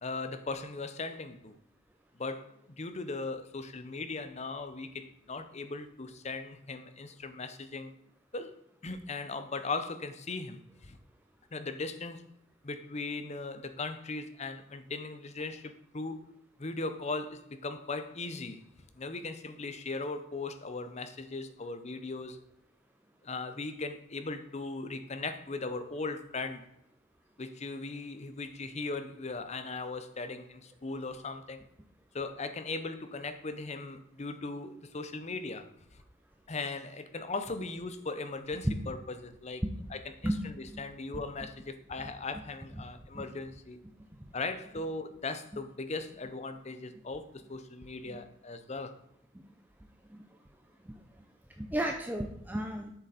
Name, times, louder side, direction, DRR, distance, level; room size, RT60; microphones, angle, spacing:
voice 1, 0.0-1.6 2.2-7.9 8.3-11.0 11.5-12.2 12.6-16.3 16.6-18.6 19.0-22.4 23.2-26.7 27.4-31.6 32.1-35.7 36.5-39.6 39.9-40.3 40.8-43.8 44.3-49.0, left 3 dB, 35° left, 0.7 m, -38 dB
voice 2, 51.6-52.9, right 1 dB, 10° right, 0.6 m, -33 dB
7.8 x 6.5 x 4.1 m
head